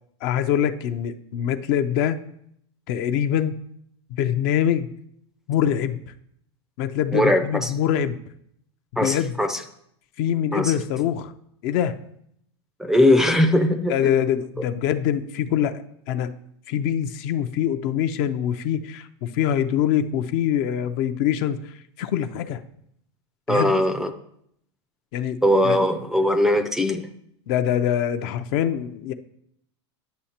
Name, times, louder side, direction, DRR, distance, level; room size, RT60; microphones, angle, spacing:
voice 1, 0.2-2.2 2.9-3.6 4.2-4.9 5.5-6.0 6.8-8.2 9.0-9.4 10.2-11.3 11.6-11.9 13.9-15.8 16.1-16.3 16.7-21.7 22.0-22.6 23.5-23.7 25.1-25.4 25.6-25.8 27.5-29.1, left 9 dB, 50° left, 10 dB, 0.5 m, -24 dB
voice 2, 7.1-7.7 9.0-9.6 10.5-10.7 12.8-14.1 23.5-24.1 25.4-27.1, left 1 dB, 5° right, 8 dB, 0.4 m, -20 dB
10.0 x 6.4 x 2.9 m, 0.73 s
supercardioid pair, 140°, 15 cm